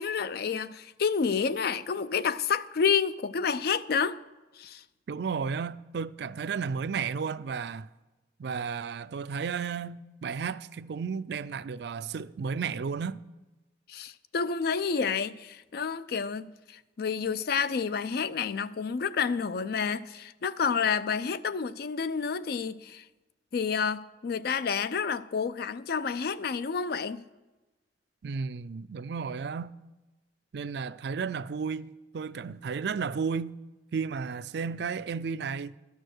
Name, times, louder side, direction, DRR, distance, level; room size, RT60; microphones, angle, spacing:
voice 1, 0.0-4.2 4.6-4.8 13.9-23.0 23.5-27.2, left 6 dB, 60° left, 0.4 m, -29 dB
voice 2, 5.1-7.9 8.4-13.2 28.2-29.7 30.5-33.5 33.9-35.7, right 5 dB, 65° right, 0.4 m, -33 dB
12.5 x 6.5 x 6.5 m
head